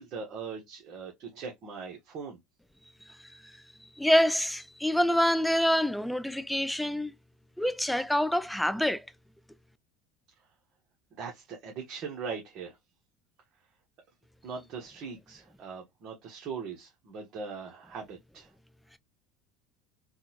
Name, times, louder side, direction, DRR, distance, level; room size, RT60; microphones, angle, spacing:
voice 1, 0.0-2.4 11.2-12.7 14.4-18.5, right 5 dB, 45° right, 1.2 m, -40 dB
voice 2, 4.0-7.1 7.6-9.0, equal, 5° left, 0.4 m, -26 dB
3.7 x 2.4 x 2.9 m
supercardioid pair, 120°, 0 cm